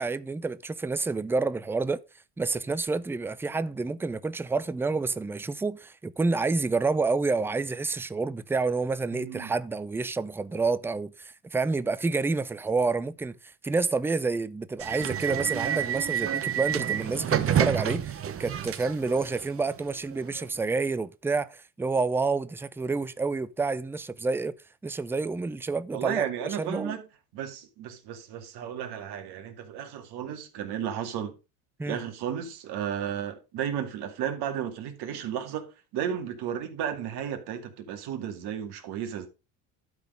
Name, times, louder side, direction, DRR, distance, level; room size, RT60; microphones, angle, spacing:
voice 1, 0.0-2.0 2.4-13.3 13.6-24.5 24.8-26.3 26.6-27.0 31.8-32.0, right 3 dB, 5° right, 0.4 m, -29 dB
voice 2, 9.1-9.5 16.8-16.9 25.9-27.0 27.3-31.4 31.9-39.3, right 9 dB, 60° right, 2.3 m, -34 dB
sound 1, 14.8-20.4, right 9 dB, 30° right, 0.9 m, -29 dB
12.0 x 4.1 x 5.2 m
supercardioid pair, 90°, 43 cm